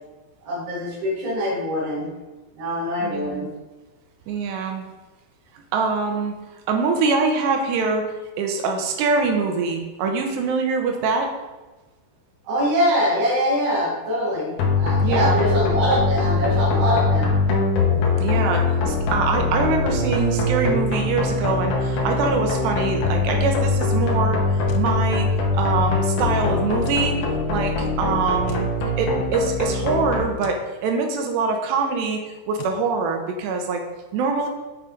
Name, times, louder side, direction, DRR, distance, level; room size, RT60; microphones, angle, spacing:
voice 1, 0.4-2.1 2.5-3.5 12.4-17.3, equal, 60° right, -5 dB, 3.9 m, -23 dB
voice 2, 3.0-3.5 4.3-4.8 5.7-6.4 6.7-11.3 15.0-15.4 18.0-28.7 29.0-32.2 32.5-33.8 34.1-34.5, right 4 dB, 75° right, 3 dB, 2.8 m, -24 dB
sound 1, 14.6-30.2, left 3 dB, 65° left, 2.6 m, -22 dB
sound 2, 24.7-24.9 26.8-27.1 28.5-28.7 30.4-30.7 32.6-32.8, left 8 dB, 85° left, 3.2 m, -38 dB
7.3 x 7.1 x 3.9 m, 1.2 s
omnidirectional pair, 5.5 m